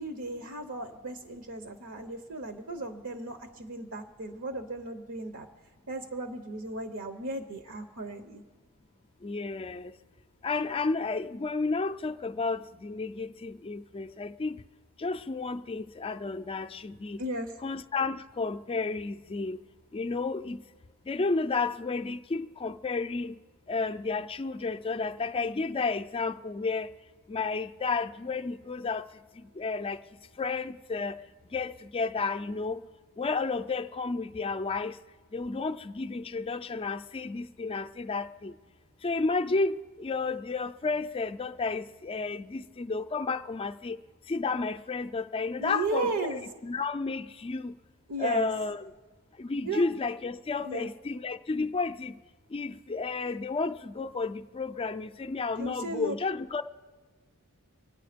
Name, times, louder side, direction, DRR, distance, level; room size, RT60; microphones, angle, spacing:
voice 1, 0.0-5.5 5.9-8.4 17.2-17.6 45.6-46.5 48.1-48.5 49.6-49.8 50.6-50.9 55.6-56.1, right 2 dB, 70° right, 0.9 m, -35 dB
voice 2, 9.2-9.9 10.4-14.6 15.0-17.2 17.6-19.6 19.9-20.6 21.1-23.4 23.7-26.9 27.3-29.1 29.4-30.0 30.4-31.2 31.5-32.8 33.2-35.0 35.3-38.5 39.0-44.0 44.3-47.7 48.2-48.9 49.4-52.2 52.5-56.6, left 4 dB, 25° left, 0.4 m, -32 dB
25.0 x 9.2 x 5.1 m
head